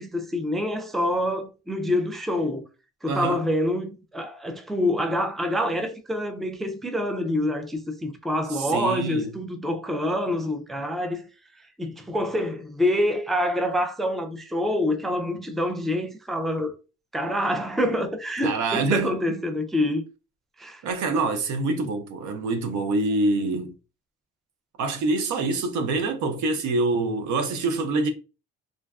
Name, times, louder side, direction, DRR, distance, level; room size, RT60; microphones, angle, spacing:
voice 1, 0.0-2.7 3.0-11.2 11.8-16.7 17.1-20.0 20.6-20.8, left 1 dB, ahead, 0.3 m, -26 dB
voice 2, 3.1-3.4 8.6-9.3 18.4-19.2 20.8-23.7 24.8-28.1, right 3 dB, 75° right, 0.6 m, -25 dB
2.5 x 2.2 x 2.3 m
cardioid pair, 90°, 30 cm